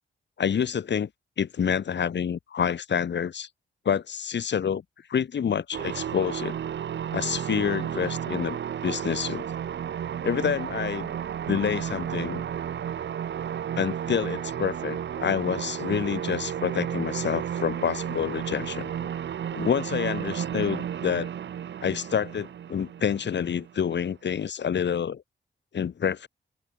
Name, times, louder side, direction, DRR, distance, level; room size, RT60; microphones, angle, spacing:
voice 1, 0.4-1.1 1.4-3.5 3.8-4.8 5.1-6.6 7.1-9.4 10.2-11.1 11.5-12.4 13.8-19.1 19.5-21.3 21.8-25.2 25.7-26.3, left 7 dB, 65° left, 3.0 m, -28 dB
sound 1, 5.7-24.0, right 9 dB, 65° right, 1.0 m, -33 dB
wide cardioid pair, 120°, 20 cm